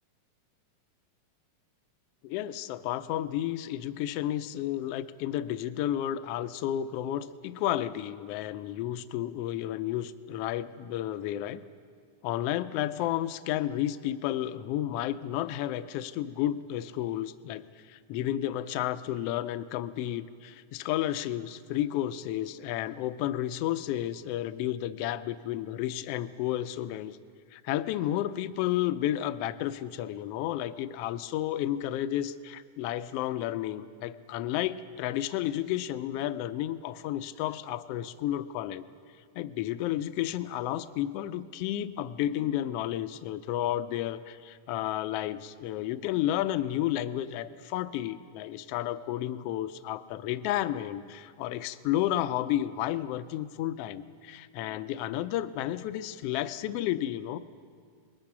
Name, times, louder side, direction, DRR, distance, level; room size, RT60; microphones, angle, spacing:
voice 1, 2.2-11.6 12.2-27.2 27.5-38.8 39.3-57.4, left 12 dB, 75° left, 12 dB, 1.5 m, -32 dB
28.0 x 20.5 x 6.0 m, 2.1 s
omnidirectional pair, 3.4 m